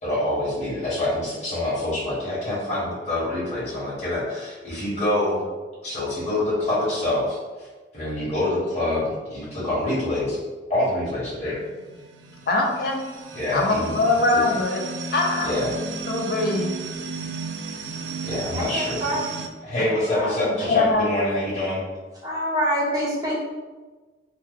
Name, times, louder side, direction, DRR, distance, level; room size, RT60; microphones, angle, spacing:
voice 1, 0.0-5.4 5.8-7.7 7.9-10.4 10.7-11.6 13.3-14.0 14.3-14.5 15.4-15.7 18.2-19.0 19.6-21.8, left 1 dB, 40° left, -9 dB, 1.3 m, -26 dB
sound 1, 11.0-19.5, right 4 dB, 80° right, 0.3 m, -34 dB
voice 2, 12.5-13.0 13.5-14.8 15.1-15.5 16.1-16.7 20.5-21.1, left 3 dB, 60° left, 1 dB, 0.5 m, -22 dB
voice 3, 18.5-19.4 19.8-20.7 22.2-23.3, equal, 20° right, -8 dB, 1.0 m, -27 dB
2.9 x 2.2 x 3.5 m, 1.3 s
head